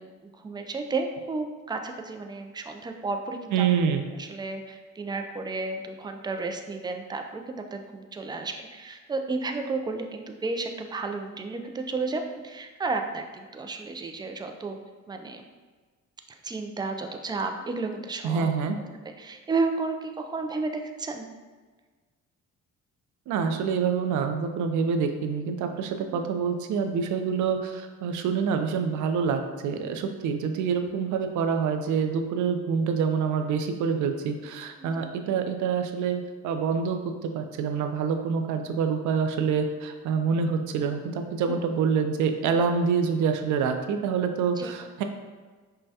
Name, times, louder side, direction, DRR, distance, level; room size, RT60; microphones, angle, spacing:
voice 1, 0.0-3.7 4.2-14.8 15.1-15.4 16.4-18.5 19.2-21.3 26.0-26.2 34.8-35.1 41.5-41.6 44.6-44.7, right 3 dB, 15° right, 5 dB, 0.3 m, -32 dB
voice 2, 3.5-4.0 18.2-18.8 23.3-45.0, right 6 dB, 80° right, 6 dB, 0.5 m, -26 dB
5.4 x 2.2 x 2.7 m, 1.4 s
cardioid pair, 90°, 30 cm